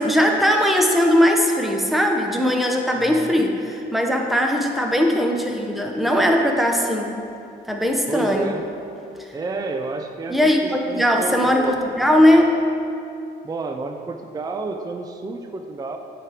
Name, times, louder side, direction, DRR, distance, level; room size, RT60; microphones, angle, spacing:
voice 1, 0.0-7.1 7.7-8.5 10.3-12.6, equal, ahead, 1 dB, 0.8 m, -19 dB
voice 2, 3.0-3.5 8.1-8.7 9.3-11.8 13.4-16.0, right 3 dB, 20° right, 5 dB, 0.4 m, -30 dB
8.6 x 3.4 x 4.9 m, 2.6 s
cardioid pair, 90°, 20 cm